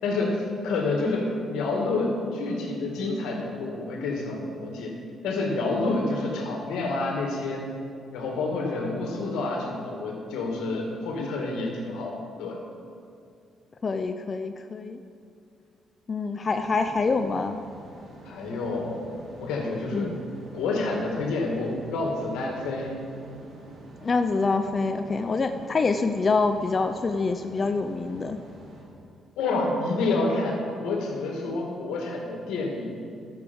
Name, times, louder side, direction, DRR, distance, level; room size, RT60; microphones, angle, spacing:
voice 1, 0.0-7.7 8.1-12.6 18.3-19.1 19.4-20.1 20.5-23.0 29.4-33.0, left 3 dB, 90° left, 0 dB, 2.0 m, -28 dB
voice 2, 13.8-15.0 16.1-17.6 19.9-20.2 24.0-28.4, left 4 dB, 35° left, 7 dB, 0.5 m, -26 dB
sound 1, 16.4-28.8, right 2 dB, 75° right, 3.0 m, -47 dB
13.5 x 7.0 x 5.3 m, 2.4 s
cardioid pair, 90°, 0 cm